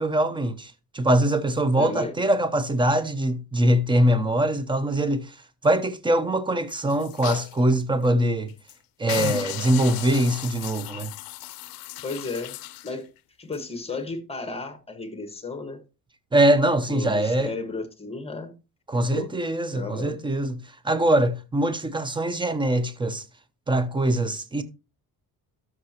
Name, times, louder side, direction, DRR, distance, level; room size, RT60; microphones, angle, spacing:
voice 1, 0.0-5.3 5.6-8.5 9.0-11.1 16.3-17.5 18.9-23.2 23.7-24.6, right 1 dB, 15° right, 0.8 m, -23 dB
voice 2, 1.7-2.1 12.0-12.6 12.8-13.1 13.4-15.8 16.9-18.5 19.1-19.3 19.7-20.1, left 3 dB, 15° left, 1.5 m, -33 dB
sound 1, 6.7-7.6 8.0-8.1 8.5-8.7 9.1-13.0 13.5-13.6, left 15 dB, 70° left, 0.6 m, -35 dB
12.5 x 6.1 x 2.9 m
cardioid pair, 115°, 37 cm